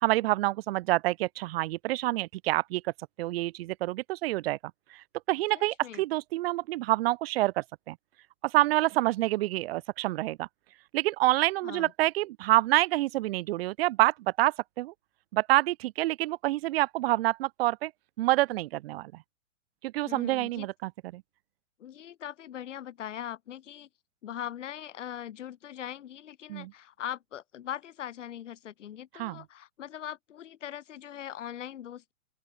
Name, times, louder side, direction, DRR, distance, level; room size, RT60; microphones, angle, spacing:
voice 1, 0.0-2.9 3.2-4.6 4.9-8.0 8.4-10.5 10.9-14.9 15.3-17.9 18.2-19.1 19.8-21.2 26.5-26.7 29.1-29.4, right 17 dB, 50° right, 1.4 m, -27 dB
voice 2, 5.5-6.0 11.6-11.9 20.0-20.7 21.8-23.9 24.2-32.1, left 10 dB, 70° left, 4.5 m, -41 dB
open air
hypercardioid pair, 125°, 38 cm